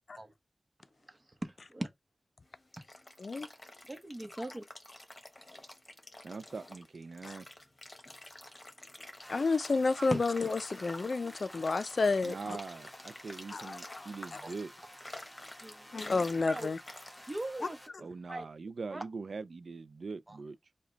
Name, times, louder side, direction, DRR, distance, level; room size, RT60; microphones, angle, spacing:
voice 1, 1.4-1.9 3.9-4.6 10.1-10.2 14.4-14.6 15.6-15.9 16.5-16.7 17.3-17.8 18.3-18.5 18.9-19.0 20.3-20.4, right 1 dB, 30° right, 1.0 m, -38 dB
sound 1, 2.4-17.5, left 1 dB, 30° left, 1.0 m, -50 dB
voice 2, 6.2-7.5 12.2-14.7 18.0-20.6, right 4 dB, 80° right, 0.3 m, -42 dB
sound 2, 9.2-17.9, equal, 5° left, 1.1 m, -53 dB
voice 3, 9.3-12.6 13.5-14.4 15.9-16.8 17.6-17.7, left 3 dB, 65° left, 0.4 m, -31 dB
4.9 x 2.2 x 3.9 m
wide cardioid pair, 75°, 0 cm